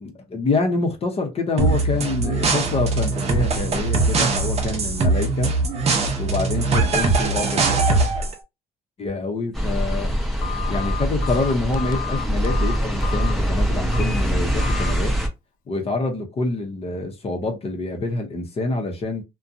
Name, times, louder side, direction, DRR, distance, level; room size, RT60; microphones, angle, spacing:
voice 1, 0.0-5.5 6.2-7.7 9.0-10.1 10.7-15.1 15.7-19.2, left 3 dB, 35° left, 0.7 m, -26 dB
sound 1, 1.6-8.3, right 3 dB, 40° right, 0.7 m, -21 dB
sound 2, 9.5-15.3, equal, ahead, 0.7 m, -23 dB
Telephone, 10.4-13.3 13.9-14.2 14.6-14.9, left 11 dB, 55° left, 0.4 m, -32 dB
2.6 x 2.2 x 2.5 m
cardioid pair, 110°, 17 cm